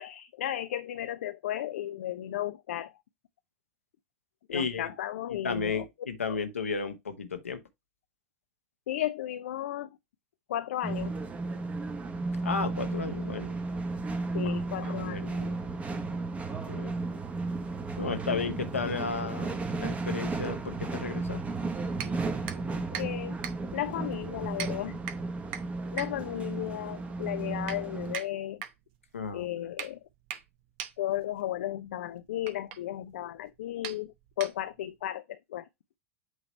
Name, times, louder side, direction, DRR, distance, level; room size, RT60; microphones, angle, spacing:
voice 1, 0.0-2.9 4.5-5.9 6.3-6.4 8.9-10.0 10.5-11.1 14.3-15.5 16.7-16.9 22.9-23.4 23.7-25.0 25.9-28.6 29.3-30.0 31.0-35.7, left 12 dB, 65° left, 0.4 m, -34 dB
voice 2, 4.5-4.9 5.4-7.6 12.4-13.5 14.4-15.3 16.5-16.9 18.0-21.4 29.1-29.5, left 5 dB, 80° left, 1.0 m, -34 dB
sound 1, 10.8-28.2, right 3 dB, 20° right, 1.0 m, -34 dB
sound 2, 22.0-35.0, right 9 dB, 55° right, 0.8 m, -43 dB
8.0 x 3.1 x 4.4 m
figure-of-eight pair, 85°, 7 cm